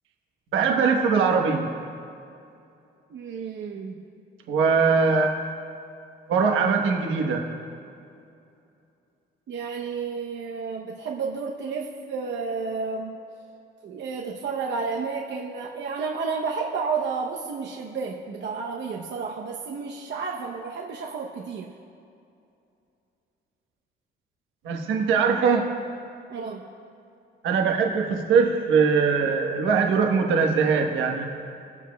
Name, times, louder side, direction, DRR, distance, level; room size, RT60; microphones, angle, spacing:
voice 1, 0.5-1.7 4.5-5.3 6.3-7.4 24.6-25.7 27.4-31.2, right 5 dB, 85° right, 2 dB, 1.2 m, -21 dB
voice 2, 3.1-4.0 9.5-13.2 13.8-21.7 26.3-26.6, right 5 dB, 65° right, -1 dB, 0.8 m, -31 dB
20.0 x 7.2 x 2.3 m, 2.6 s
cardioid pair, 90°, 20 cm